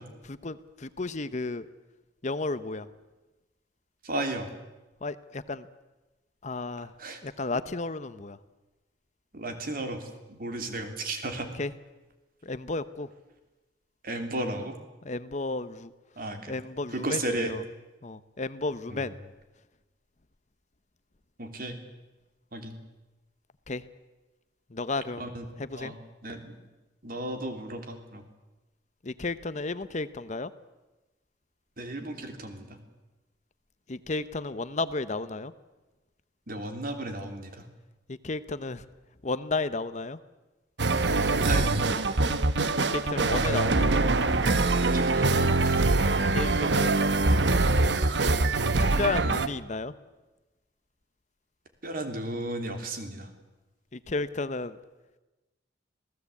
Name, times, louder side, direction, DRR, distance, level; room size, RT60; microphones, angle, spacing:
voice 1, 0.2-1.6 2.2-2.9 5.0-5.7 6.4-6.9 7.2-8.4 11.5-11.7 12.4-13.1 15.0-15.9 16.5-17.6 18.0-19.1 23.7-23.8 24.7-25.3 25.6-25.9 29.0-30.5 33.9-35.5 38.1-38.8 39.2-40.2 42.8-44.0 46.1-47.0 48.8-49.9 53.9-54.8, left 3 dB, 40° left, 14 dB, 0.8 m, -33 dB
voice 2, 4.0-4.5 7.0-7.2 9.3-11.5 14.0-14.8 16.2-16.6 16.9-17.5 18.9-19.2 21.4-21.8 22.5-22.7 25.2-25.4 25.7-26.0 26.2-26.5 27.0-28.2 31.8-32.8 36.5-37.6 41.0-42.2 44.8-45.9 51.8-53.3, right 1 dB, 50° right, 6 dB, 3.2 m, -34 dB
sound 1, 40.8-49.5, right 3 dB, 70° right, 1.1 m, -24 dB
26.5 x 17.5 x 8.5 m, 1.1 s
head